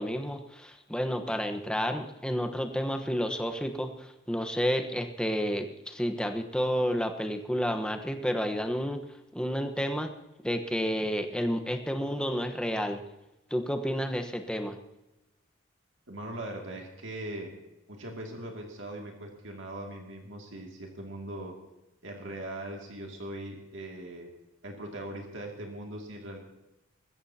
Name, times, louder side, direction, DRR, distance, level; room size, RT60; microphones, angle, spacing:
voice 1, 0.0-9.0 9.3-10.1 10.4-13.0 13.5-14.8, equal, 5° left, 5 dB, 1.1 m, -30 dB
voice 2, 16.1-17.5 17.9-21.5 22.0-24.3 24.6-26.4, right 1 dB, 65° right, 1 dB, 2.4 m, -40 dB
21.0 x 15.5 x 2.8 m, 0.98 s
head